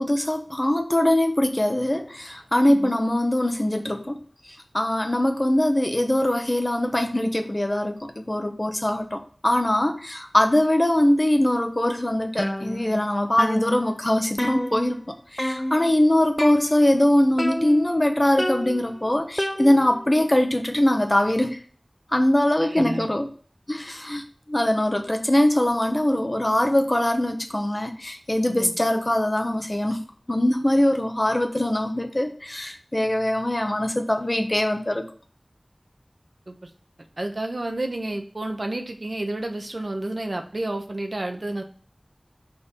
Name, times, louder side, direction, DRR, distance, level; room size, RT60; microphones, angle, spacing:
voice 1, 0.0-4.2 4.7-21.6 22.1-23.3 23.7-24.2 24.5-30.0 30.3-35.0, left 1 dB, 35° left, 5 dB, 1.1 m, -22 dB
sound 1, 12.4-13.1 13.4-15.1 15.4-15.9 16.4-17.1 17.4-18.0 18.4-20.1, equal, 15° left, 0.4 m, -30 dB
voice 2, 22.6-23.1 28.5-28.7 36.5-36.7 37.2-41.6, right 2 dB, 75° right, 4 dB, 1.1 m, -30 dB
5.4 x 4.5 x 5.4 m, 0.43 s
wide cardioid pair, 45°, 0 cm